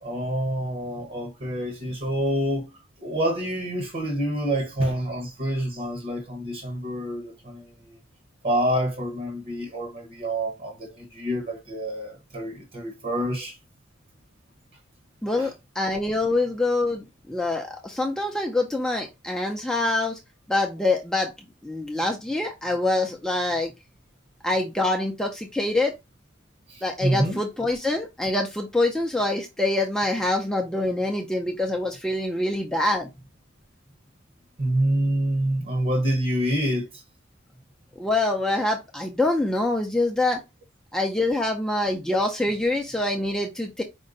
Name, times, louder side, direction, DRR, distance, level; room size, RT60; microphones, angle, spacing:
voice 1, 0.0-2.7 3.0-8.0 8.4-13.6 15.3-15.5 26.7-27.4 34.6-37.0, right 1 dB, 45° right, 1.1 m, -27 dB
voice 2, 15.2-20.2 20.5-21.3 21.6-23.7 24.4-25.9 26.8-33.1 38.0-40.4 40.9-43.8, left 2 dB, 5° left, 0.5 m, -25 dB
5.3 x 2.2 x 3.8 m
head